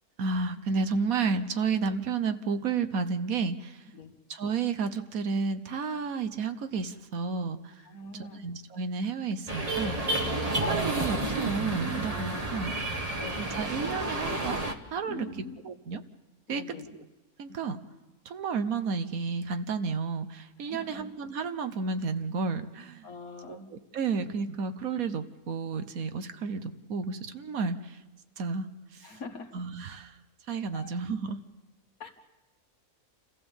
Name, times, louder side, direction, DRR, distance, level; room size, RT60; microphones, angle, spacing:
voice 1, 0.2-3.8 4.3-7.8 8.1-10.0 10.6-12.7 13.4-14.6 14.9-15.3 15.6-16.0 16.5-16.6 17.4-17.8 18.2-23.1 23.5-28.0 28.4-28.7 28.9-29.1 29.5-30.2 30.5-31.4, right 5 dB, 70° right, 10 dB, 1.4 m, -31 dB
voice 2, 7.8-8.4 10.1-10.5 12.0-13.6 15.0-15.6 16.5-16.9 20.6-21.0 23.0-23.6 29.0-29.5 30.7-30.9 32.0-32.1, left 3 dB, 70° left, 4 dB, 2.2 m, -44 dB
sound 1, 9.5-14.7, right 2 dB, 25° right, 1.2 m, -30 dB
28.5 x 15.0 x 7.2 m, 1.1 s
omnidirectional pair, 1.6 m